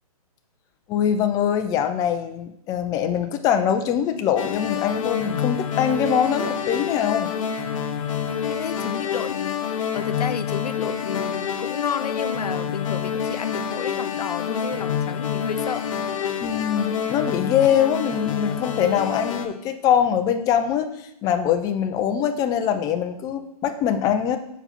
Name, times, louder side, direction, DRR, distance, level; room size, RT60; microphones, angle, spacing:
voice 1, 0.9-7.3 16.4-24.4, left 9 dB, 20° left, 7 dB, 0.5 m, -23 dB
sound 1, 4.4-19.5, left 7 dB, 55° left, 1.0 m, -27 dB
voice 2, 8.5-15.9, left 7 dB, 80° left, 12 dB, 0.6 m, -31 dB
5.8 x 4.4 x 5.9 m, 0.78 s
hypercardioid pair, 130°, 20 cm